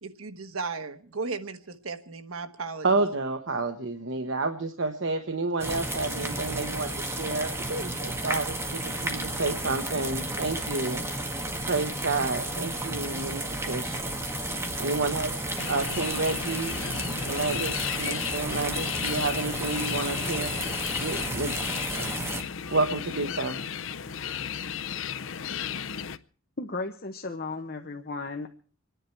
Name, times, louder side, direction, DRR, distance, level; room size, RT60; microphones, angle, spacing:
voice 1, 0.0-2.8, right 4 dB, 90° right, 1.3 m, -35 dB
voice 2, 2.8-11.0 11.7-16.8 17.2-20.5 20.8-21.5 21.9-22.1 22.6-23.6 24.3-24.5, right 3 dB, 65° right, 1.1 m, -30 dB
sound 1, 5.6-22.4, right 1 dB, 10° right, 1.7 m, -32 dB
sound 2, 15.6-26.2, left 8 dB, 70° left, 0.6 m, -34 dB
voice 3, 26.6-28.5, left 3 dB, 45° left, 1.0 m, -35 dB
26.5 x 10.5 x 4.5 m
head